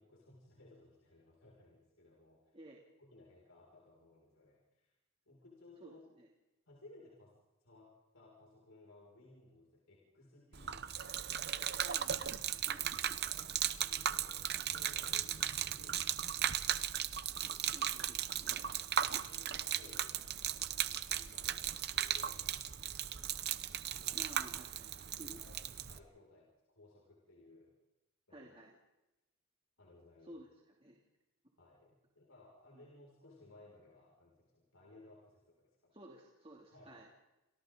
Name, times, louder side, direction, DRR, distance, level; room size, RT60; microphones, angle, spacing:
voice 1, 0.0-2.7 3.0-4.9 5.2-6.0 6.7-7.3 7.6-10.9 11.1-11.8 12.6-13.5 13.8-16.7 17.5-17.6 18.5-18.7 19.0-23.2 24.0-24.2 25.1-25.6 25.9-27.7 28.3-28.5 29.8-30.4 31.6-36.0 36.7-37.0, left 2 dB, 70° left, -3 dB, 6.3 m, -61 dB
voice 2, 5.8-6.3 11.8-13.2 17.4-18.6 24.1-25.4 28.3-28.7 30.2-30.5 30.8-31.0 32.7-32.8 35.9-37.1, right 1 dB, 25° right, -2 dB, 2.9 m, -54 dB
Gurgling / Liquid, 10.5-26.0, right 10 dB, 50° right, 0.9 m, -37 dB
30.0 x 27.0 x 4.0 m, 0.98 s
head